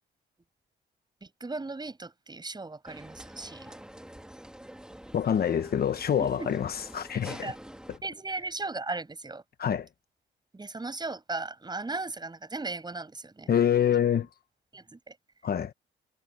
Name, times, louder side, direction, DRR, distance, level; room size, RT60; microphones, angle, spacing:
voice 1, 1.2-3.8 6.2-6.6 7.3-7.6 8.0-9.4 10.5-13.5 14.7-15.2, right 3 dB, 20° right, 7.8 m, -37 dB
sound 1, 2.9-8.0, right 1 dB, 5° right, 1.8 m, -47 dB
voice 2, 5.1-6.7 6.9-7.5 9.6-9.9 13.5-14.3 15.4-15.7, left 9 dB, 50° left, 1.1 m, -26 dB
cardioid pair, 90°, 20 cm